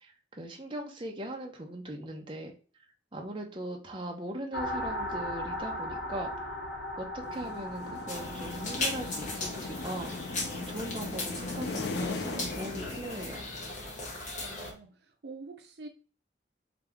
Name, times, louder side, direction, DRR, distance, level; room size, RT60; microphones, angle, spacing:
voice 1, 0.0-2.5 3.1-6.5 7.0-13.5, right 1 dB, 25° right, 1 dB, 0.9 m, -40 dB
sound 1, 4.5-11.3, left 1 dB, 85° left, 1.2 m, -38 dB
sound 2, 7.2-13.7, left 3 dB, 65° left, 0.6 m, -39 dB
sound 3, 8.1-14.7, left 2 dB, 40° left, 1.2 m, -38 dB
voice 2, 14.4-15.9, right 3 dB, 65° right, 3 dB, 0.6 m, -46 dB
4.8 x 2.9 x 3.6 m, 0.37 s
head